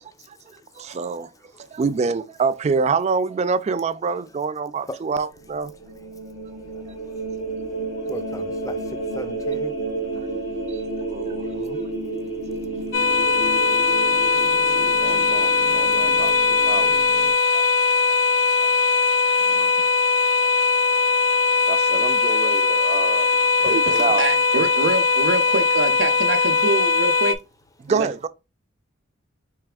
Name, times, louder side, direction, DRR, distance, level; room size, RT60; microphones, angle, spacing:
voice 1, 0.8-1.3 1.7-5.7 10.7-11.8 14.1-14.2 14.8-17.6 19.5-19.7 21.7-23.3 23.6-24.2 27.8-28.3, right 5 dB, 35° right, 0.3 m, -27 dB
sound 1, 5.4-17.3, right 3 dB, 90° left, 1.3 m, -31 dB
voice 2, 8.1-8.8 9.1-9.7 16.2-16.3 23.9-24.1, left 2 dB, 15° left, 0.5 m, -35 dB
sound 2, 12.9-27.3, left 4 dB, 70° left, 0.4 m, -20 dB
voice 3, 23.6-27.4 27.9-28.1, right 3 dB, 65° right, 0.7 m, -25 dB
4.6 x 3.3 x 2.3 m
head